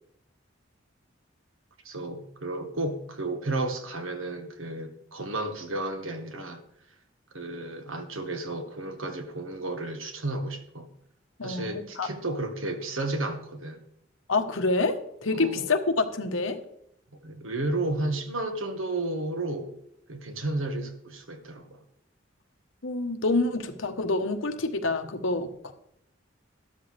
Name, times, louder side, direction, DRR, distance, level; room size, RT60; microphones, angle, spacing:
voice 1, 1.8-6.6 7.3-10.9 11.4-13.8 15.3-15.7 17.2-19.7 20.1-21.8, right 2 dB, 90° right, 5 dB, 1.6 m, -32 dB
voice 2, 11.4-12.1 14.3-16.6 22.8-25.5, left 3 dB, 80° left, 6 dB, 1.2 m, -27 dB
13.0 x 12.5 x 3.4 m, 0.72 s
head